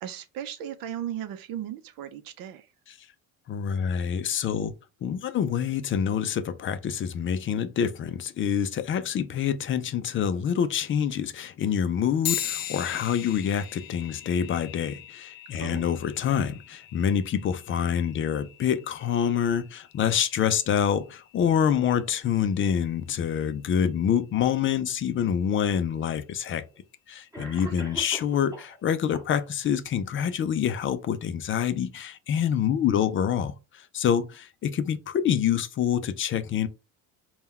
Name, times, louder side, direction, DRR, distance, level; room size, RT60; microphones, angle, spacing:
voice 1, 0.0-2.7 15.5-15.9 27.6-27.8, right 10 dB, 70° right, 0.6 m, -36 dB
voice 2, 3.5-4.7 5.0-26.6 27.1-33.5 33.9-36.7, left 8 dB, 35° left, 0.4 m, -26 dB
sound 1, 12.2-22.1, left 10 dB, 70° left, 0.8 m, -39 dB
Cough, 26.7-26.8 27.3-28.8 29.1-29.7, right 1 dB, 10° right, 1.6 m, -41 dB
3.6 x 2.3 x 4.1 m
cardioid pair, 130°, 36 cm